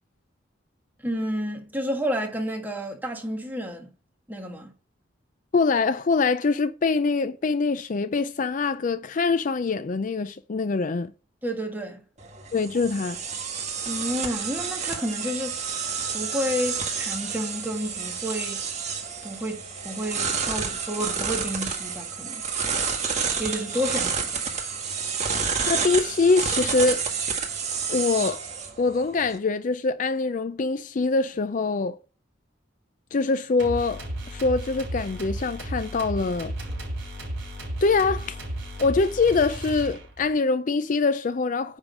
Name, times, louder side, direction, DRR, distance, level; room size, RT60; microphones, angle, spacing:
voice 1, 1.0-3.9 4.3-4.7 11.4-12.0 13.9-15.6 16.1-18.6 19.2-22.4 23.4-24.4, equal, 10° right, 1.7 m, -30 dB
voice 2, 5.5-11.1 12.5-13.2 25.7-27.0 27.9-28.4 28.8-32.0 33.1-36.5 37.8-38.4 38.8-41.8, left 4 dB, 45° left, 0.4 m, -24 dB
sound 1, 12.2-29.4, right 5 dB, 35° right, 1.7 m, -30 dB
sound 2, 33.6-40.3, right 1 dB, 65° right, 4.2 m, -34 dB
9.8 x 3.8 x 6.2 m
head